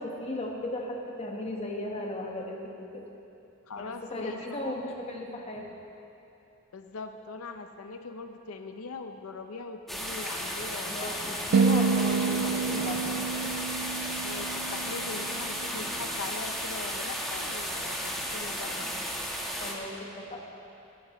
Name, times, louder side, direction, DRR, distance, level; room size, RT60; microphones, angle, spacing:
voice 1, 0.0-3.1 3.8-5.7 10.8-13.8 19.6-20.5, left 1 dB, 30° left, 0 dB, 1.2 m, -36 dB
voice 2, 3.7-4.8 6.7-11.4 14.2-18.9, left 4 dB, 90° left, 6 dB, 0.6 m, -41 dB
sound 1, 9.9-19.7, equal, ahead, 1.3 m, -34 dB
sound 2, 11.5-15.8, right 5 dB, 65° right, 0.3 m, -28 dB
17.0 x 13.0 x 3.1 m, 2.8 s
head